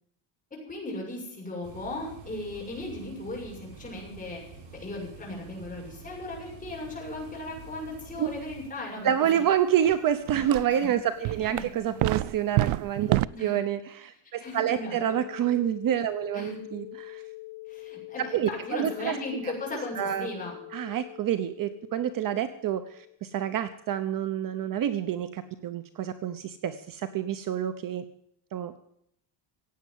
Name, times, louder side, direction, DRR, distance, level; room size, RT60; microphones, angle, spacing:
voice 1, 0.5-9.4 10.7-10.9 11.2-12.0 13.3-13.7 14.4-15.2 16.3-16.6 17.7-20.5, left 2 dB, 15° left, -2 dB, 6.5 m, -37 dB
sound 1, 1.6-8.7, right 5 dB, 65° right, 6.7 m, -47 dB
voice 2, 9.0-17.2 18.2-19.1 19.4-19.5 20.0-20.3 20.7-28.0 28.5-28.7, right 10 dB, 45° right, 11 dB, 0.9 m, -28 dB
sound 2, 9.8-10.0 10.3-10.8 11.3-13.3, right 17 dB, 85° right, 0.7 m, -27 dB
sound 3, 14.7-23.2, left 21 dB, 85° left, 1.4 m, -44 dB
16.0 x 9.0 x 9.2 m, 0.72 s
cardioid pair, 160°, 48 cm